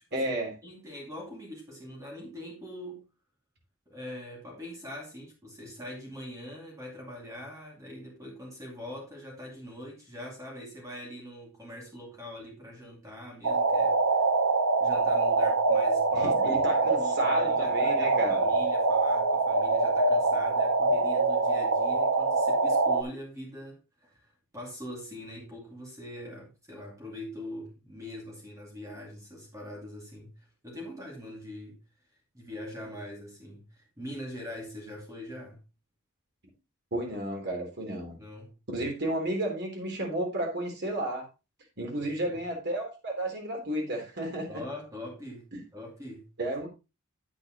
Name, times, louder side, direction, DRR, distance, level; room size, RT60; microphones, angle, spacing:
voice 1, 0.1-0.5 16.1-18.5 36.9-38.2 38.7-41.3 41.8-44.6 46.4-46.7, right 1 dB, 55° right, 3.8 m, -32 dB
voice 2, 0.6-3.1 3.9-14.4 14.8-31.8 32.3-35.6 38.2-38.5 42.0-42.4 44.5-46.3, left 1 dB, 15° right, 2.6 m, -43 dB
sound 1, 13.4-23.0, right 3 dB, 75° right, 1.1 m, -25 dB
8.8 x 8.7 x 3.0 m
head